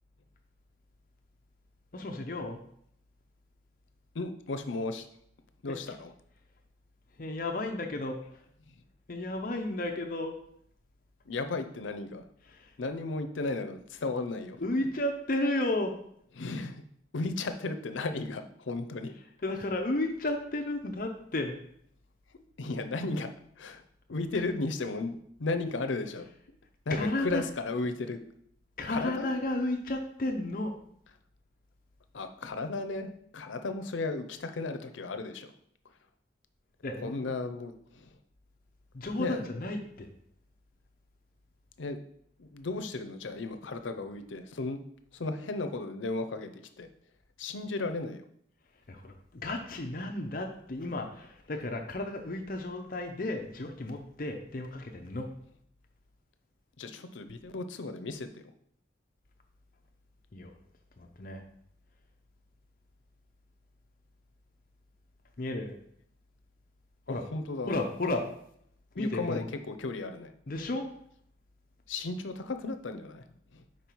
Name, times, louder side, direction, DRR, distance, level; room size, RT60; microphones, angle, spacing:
voice 1, 1.9-2.6 5.7-5.8 7.2-8.4 9.1-10.4 12.5-12.7 14.6-15.9 19.4-21.5 26.9-27.4 28.8-30.7 36.8-37.3 38.9-40.1 48.9-55.3 60.3-60.5 61.0-61.4 65.4-65.7 67.1-67.2 67.7-68.3 69.0-69.5 70.5-70.9, left 2 dB, 45° left, 4 dB, 0.6 m, -33 dB
voice 2, 4.1-5.1 5.6-6.1 8.7-8.8 11.3-12.3 12.8-14.6 16.4-16.8 17.1-19.2 22.6-23.3 23.6-23.8 24.1-26.3 26.9-28.2 28.9-29.3 32.1-35.5 37.0-38.2 39.2-39.4 41.8-42.0 42.4-44.8 45.1-46.9 47.4-48.2 56.8-58.4 67.1-67.7 68.9-70.3 71.9-73.2 73.5-73.6, left 3 dB, 90° left, 8 dB, 0.6 m, -35 dB
5.4 x 4.8 x 4.5 m, 0.69 s
head